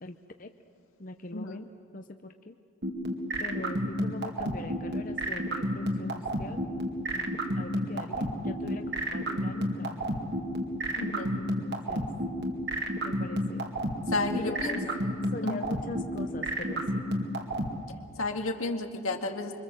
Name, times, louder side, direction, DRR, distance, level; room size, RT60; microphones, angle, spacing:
voice 1, 0.0-0.5 1.0-2.6 3.4-6.7 7.1-10.2 11.3-12.1 13.0-13.7 14.4-14.8 15.3-17.1, left 2 dB, 40° left, 6 dB, 0.8 m, -42 dB
sound 1, 2.8-17.7, equal, 50° right, 2.4 m, -29 dB
voice 2, 11.0-11.3 14.1-14.7 15.4-15.7 18.2-19.6, left 2 dB, 85° left, 3 dB, 2.1 m, -32 dB
25.5 x 24.5 x 7.6 m, 2.4 s
head